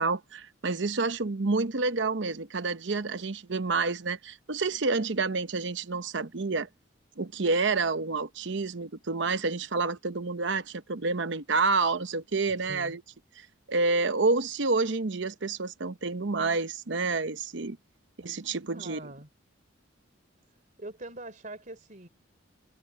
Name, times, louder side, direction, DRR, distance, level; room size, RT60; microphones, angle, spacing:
voice 1, 0.0-6.7 7.2-13.0 13.4-17.8 18.2-19.0, right 3 dB, 60° right, 0.9 m, -29 dB
voice 2, 12.6-13.0 18.7-19.3 20.8-22.1, right 2 dB, 40° right, 3.5 m, -43 dB
head